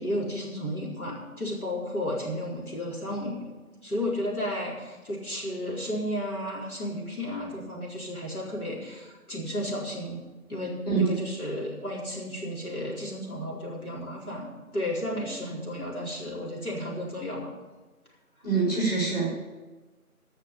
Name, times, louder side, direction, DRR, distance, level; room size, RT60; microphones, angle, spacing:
voice 1, 0.0-3.5 3.8-10.2 10.5-17.5, left 1 dB, 70° left, -5 dB, 4.4 m, -33 dB
voice 2, 18.4-19.4, right 4 dB, 25° left, -9 dB, 5.0 m, -25 dB
13.0 x 6.5 x 9.2 m, 1.2 s
figure-of-eight pair, 180°, 45 cm